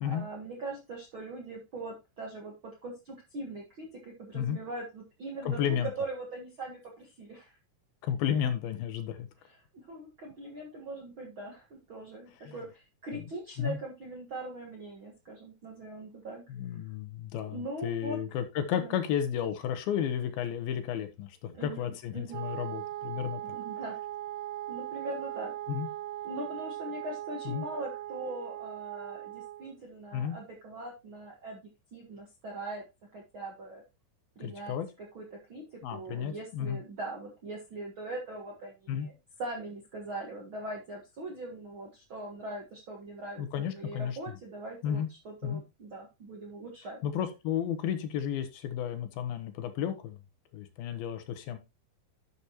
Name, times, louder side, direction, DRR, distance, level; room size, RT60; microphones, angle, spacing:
voice 1, 0.0-7.6 9.4-9.6 9.9-16.4 17.5-18.2 18.7-19.0 21.5-22.5 23.4-24.0 24.7-25.5 26.2-31.6 31.9-32.8 33.1-33.8 34.3-39.1 39.4-47.0, right 2 dB, 60° right, 0 dB, 1.3 m, -41 dB
voice 2, 5.5-5.9 8.0-9.3 12.5-12.6 13.6-13.8 16.5-23.4 25.7-25.9 27.5-27.6 30.1-30.4 34.4-34.9 35.8-36.8 38.9-39.1 43.4-44.2 44.8-45.1 45.4-45.6 47.0-50.2 50.5-51.6, left 9 dB, 75° left, 9 dB, 2.6 m, -32 dB
Wind instrument woodwind instrument, 22.3-29.7, right 14 dB, 85° right, 3.7 m, -39 dB
11.5 x 6.9 x 3.0 m, 0.26 s
omnidirectional pair, 4.7 m